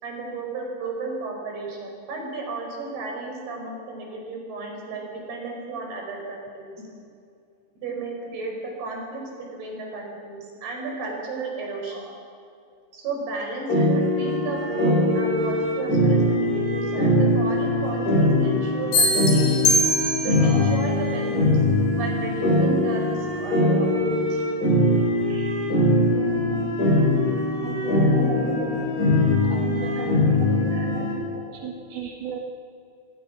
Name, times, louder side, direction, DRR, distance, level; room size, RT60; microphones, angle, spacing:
voice 1, 0.0-6.9 7.8-9.2 9.5-12.2 12.9-19.8 20.2-21.5 22.0-24.4 25.2-25.5 26.3-27.0 27.9-28.8 29.8-32.1, right 3 dB, 60° right, 1 dB, 7.0 m, -34 dB
sound 1, 13.7-31.1, left 1 dB, 20° left, 5.9 m, -22 dB
sound 2, 18.9-20.6, left 1 dB, 70° left, 5.1 m, -22 dB
voice 2, 26.0-26.5 27.6-28.3 29.5-30.1 30.4-30.6 30.9-31.0 31.5-32.4, right 8 dB, 85° right, 2 dB, 3.7 m, -36 dB
27.0 x 20.5 x 6.1 m, 2.5 s
omnidirectional pair, 5.1 m